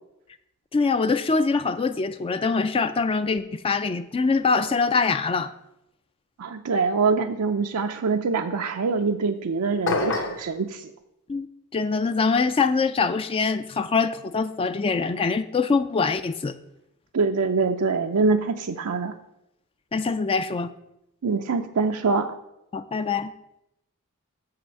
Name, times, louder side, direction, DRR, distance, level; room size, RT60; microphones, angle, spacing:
voice 1, 0.7-5.5 11.3-11.5 11.7-16.6 19.9-20.7 22.7-23.3, left 4 dB, 25° left, 0.3 m, -24 dB
voice 2, 6.4-10.9 17.1-19.2 21.2-22.3, right 4 dB, 80° right, 0.5 m, -24 dB
sound 1, 9.9-10.5, left 2 dB, 55° left, 1.0 m, -25 dB
6.9 x 5.7 x 6.4 m
head